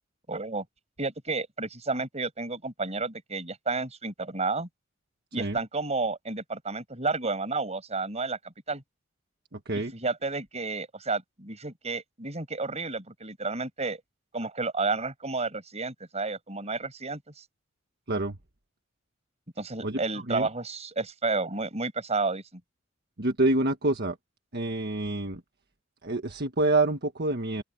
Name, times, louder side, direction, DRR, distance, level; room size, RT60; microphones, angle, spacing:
voice 1, 0.3-0.6 1.0-4.7 5.3-8.8 9.9-14.0 14.3-17.4 19.6-22.6, right 3 dB, 30° right, 6.1 m, -31 dB
voice 2, 9.5-9.9 18.1-18.4 19.8-20.0 20.3-20.5 23.2-24.2 24.5-25.4 26.0-27.6, right 2 dB, 50° right, 1.5 m, -27 dB
open air
head